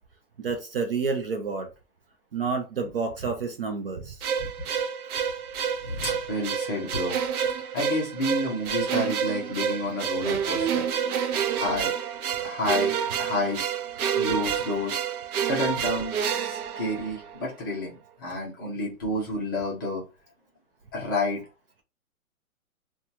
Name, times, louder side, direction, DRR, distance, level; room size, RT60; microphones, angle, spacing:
voice 1, 0.4-1.7 2.3-4.2, right 5 dB, 45° right, 0.4 m, -29 dB
sound 1, 4.2-17.5, right 8 dB, 85° right, 0.6 m, -29 dB
voice 2, 5.8-7.2 7.7-10.9 11.6-11.9 12.4-13.7 14.1-15.0 15.4-20.0 20.9-21.5, left 1 dB, 15° left, 0.5 m, -30 dB
2.7 x 2.3 x 2.5 m
hypercardioid pair, 150°, 43 cm